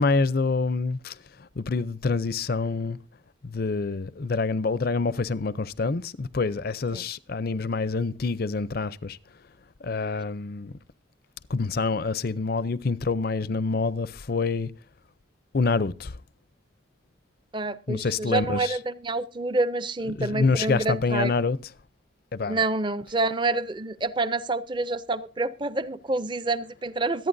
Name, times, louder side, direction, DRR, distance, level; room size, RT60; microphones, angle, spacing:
voice 1, 0.0-3.0 3.4-9.2 9.8-10.7 11.5-14.7 15.5-16.2 17.9-18.8 20.0-21.7 22.3-22.6, left 4 dB, 50° left, 0.5 m, -27 dB
voice 2, 17.5-21.3 22.5-27.3, right 2 dB, 25° right, 0.5 m, -27 dB
24.5 x 9.2 x 2.6 m
head